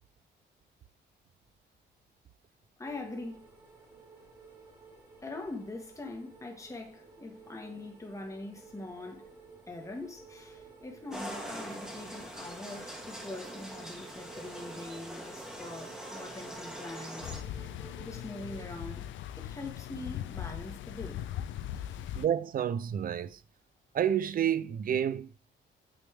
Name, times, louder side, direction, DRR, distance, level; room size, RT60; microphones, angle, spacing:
voice 1, 2.8-3.5 5.2-9.3 9.7-17.6 18.0-19.1 19.4-21.2 21.7-22.1, left 2 dB, 15° left, 1.4 m, -43 dB
sound 1, 2.8-18.7, right 4 dB, 20° right, 1.8 m, -53 dB
sound 2, 11.1-17.4, equal, 5° right, 1.4 m, -43 dB
sound 3, 17.2-22.3, left 11 dB, 70° left, 0.4 m, -39 dB
voice 2, 22.1-23.4 23.9-25.3, right 9 dB, 45° right, 0.5 m, -29 dB
8.7 x 3.1 x 3.4 m
cardioid pair, 90°, 20 cm